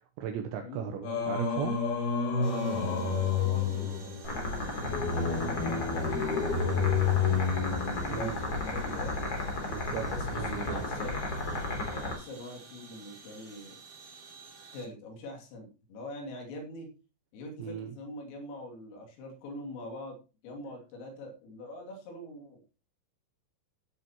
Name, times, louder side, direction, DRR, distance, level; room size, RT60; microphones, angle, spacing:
voice 1, 0.0-1.8 8.1-8.4 9.7-10.1 10.3-10.8 17.6-17.9, right 8 dB, 75° right, 4 dB, 2.9 m, -36 dB
voice 2, 0.6-1.4 2.4-7.6 8.2-9.3 10.1-11.4 12.0-13.8 14.7-16.9 17.3-20.2 20.4-22.6, left 1 dB, 80° left, 1 dB, 5.3 m, -44 dB
Singing, 1.0-8.4, left 6 dB, 50° left, 2.7 m, -30 dB
sound 1, 2.4-14.9, right 4 dB, 30° right, 3.8 m, -52 dB
sound 2, 4.2-12.1, left 2 dB, 30° left, 3.1 m, -34 dB
16.5 x 8.9 x 3.0 m, 0.31 s
omnidirectional pair, 5.9 m